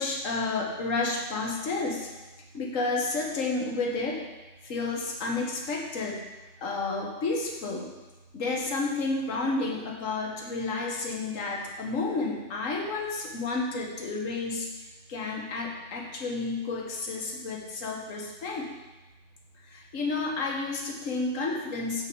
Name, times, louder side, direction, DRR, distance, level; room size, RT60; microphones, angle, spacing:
voice 1, 0.0-2.1 2.5-4.2 4.6-6.2 6.6-7.9 8.3-14.7 15.1-18.7 19.6-22.1, left 3 dB, 75° left, 0 dB, 1.6 m, -31 dB
6.8 x 5.5 x 6.7 m, 1.1 s
omnidirectional pair, 1.4 m